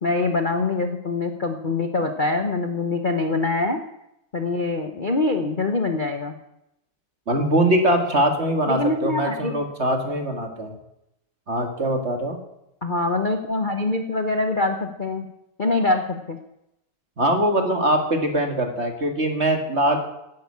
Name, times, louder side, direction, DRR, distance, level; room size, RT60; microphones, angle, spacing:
voice 1, 0.0-3.8 4.3-6.3 8.7-9.5 12.8-15.3 15.6-16.4, left 3 dB, 40° left, 4 dB, 0.7 m, -24 dB
voice 2, 7.3-10.7 11.5-12.4 17.2-20.0, right 1 dB, 35° right, 4 dB, 2.0 m, -22 dB
11.5 x 10.5 x 8.6 m, 0.85 s
omnidirectional pair, 2.3 m